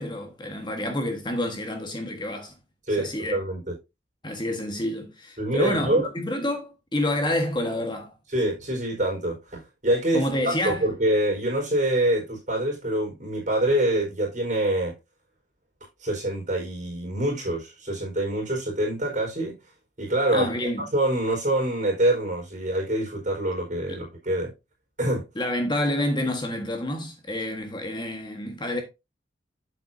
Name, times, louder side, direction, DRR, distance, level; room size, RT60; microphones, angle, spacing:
voice 1, 0.0-2.5 3.0-3.4 4.2-8.1 10.1-10.9 20.3-20.8 23.9-24.0 25.3-28.8, left 1 dB, 25° left, 1.4 m, -28 dB
voice 2, 2.9-3.7 5.4-6.1 8.3-15.0 16.0-19.6 20.0-20.5 20.9-24.5 25.0-25.3, right 1 dB, 40° right, 4.4 m, -25 dB
8.2 x 7.8 x 2.7 m
head